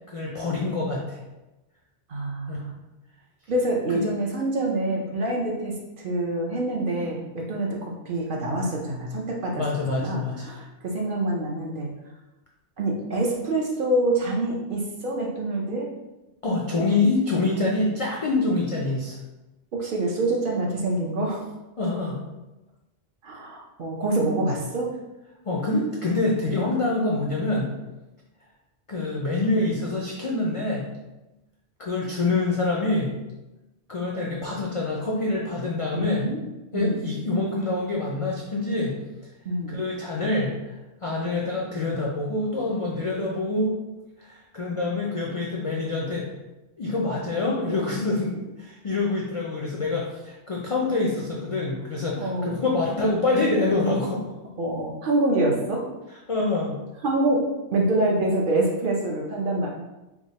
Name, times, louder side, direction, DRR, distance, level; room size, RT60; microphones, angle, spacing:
voice 1, 0.1-1.2 2.5-2.6 3.9-4.0 9.6-10.5 16.4-19.2 21.8-22.2 25.4-27.7 28.9-30.8 31.8-33.1 33.9-36.2 36.7-38.9 39.7-40.7 41.0-43.7 44.2-46.3 46.8-54.2 56.3-56.8, left 2 dB, 55° left, -3 dB, 0.3 m, -26 dB
voice 2, 2.1-2.7 3.5-5.7 6.0-9.6 9.9-11.9 12.8-15.9 19.7-21.4 23.2-24.9 35.9-36.4 36.7-37.0 39.4-39.8 52.2-52.6 54.6-55.9 57.0-57.4 57.7-59.7, right 2 dB, 55° right, -1 dB, 0.7 m, -26 dB
3.5 x 2.1 x 3.9 m, 1.0 s
omnidirectional pair, 1.2 m